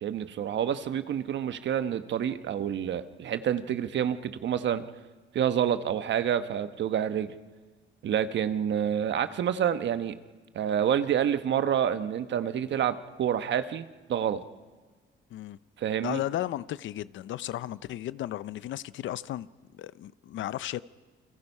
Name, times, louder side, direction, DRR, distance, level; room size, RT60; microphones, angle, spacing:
voice 1, 0.0-4.8 5.3-7.3 8.0-10.2 10.5-14.4 15.8-16.2, right 9 dB, 65° right, 1.2 m, -28 dB
voice 2, 16.0-19.5 19.7-20.8, left 13 dB, 75° left, 0.6 m, -34 dB
29.0 x 24.5 x 5.5 m
cardioid pair, 90°, 20 cm